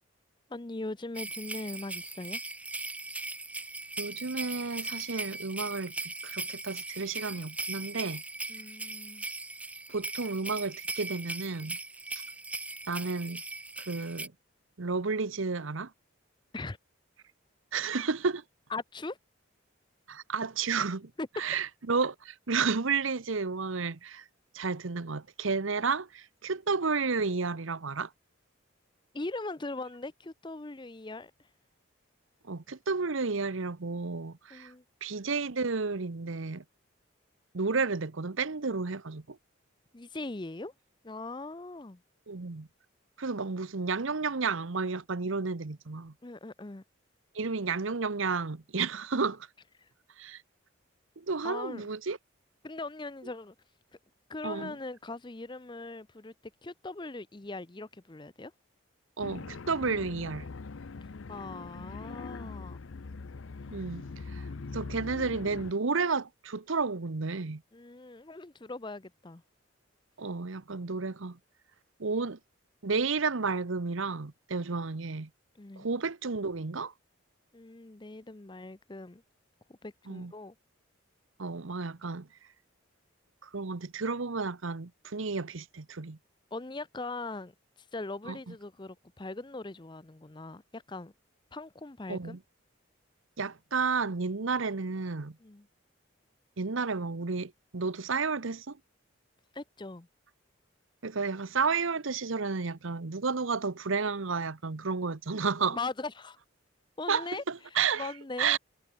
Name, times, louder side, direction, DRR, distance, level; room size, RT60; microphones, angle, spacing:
voice 1, 0.5-2.4 8.5-9.3 16.5-16.8 18.7-19.2 21.2-21.3 29.1-31.3 34.5-34.8 39.9-40.7 41.0-42.0 46.2-46.8 49.8-49.9 51.4-51.9 52.6-53.5 54.3-56.3 56.6-58.5 61.3-62.8 67.7-69.4 75.6-75.9 77.5-79.2 79.8-80.5 86.5-87.5 87.9-91.1 91.5-92.4 95.4-95.7 99.5-100.1 105.7-106.4 107.0-107.4 108.0-108.6, left 2 dB, 20° left, 0.6 m, -40 dB
sound 1, 1.2-14.3, right 2 dB, 5° right, 1.0 m, -39 dB
voice 2, 4.0-8.2 9.9-11.8 12.2-12.3 12.9-13.4 13.9-14.3 14.8-15.9 17.7-18.4 20.1-21.1 21.4-24.2 24.5-28.1 32.4-34.7 35.0-36.6 37.5-39.4 42.3-42.7 43.2-46.1 47.3-49.5 50.2-50.4 51.2-52.2 54.4-54.7 59.2-60.5 63.7-64.0 64.3-64.5 64.7-67.6 70.2-71.4 72.0-72.4 72.8-75.3 75.8-76.9 80.1-80.3 81.4-82.3 83.4-86.2 88.2-88.5 92.1-92.4 93.4-95.4 96.6-98.8 101.0-105.8 107.1-108.1 108.4-108.6, right 4 dB, 70° right, 0.9 m, -32 dB
sound 2, 59.2-65.7, left 4 dB, 70° left, 0.6 m, -42 dB
head